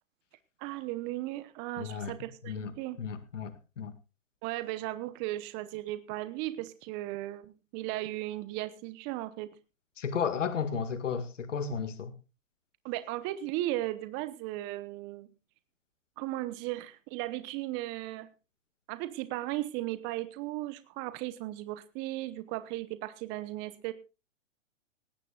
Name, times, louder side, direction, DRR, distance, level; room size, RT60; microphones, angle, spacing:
voice 1, 0.6-3.0 4.4-9.5 12.8-15.3 16.2-18.3 18.9-23.9, right 16 dB, 30° right, 1.0 m, -36 dB
voice 2, 1.8-2.1 2.5-2.7 3.0-3.9 10.0-12.1, left 6 dB, 75° left, 2.0 m, -33 dB
18.5 x 16.0 x 2.4 m
hypercardioid pair, 125°, 38 cm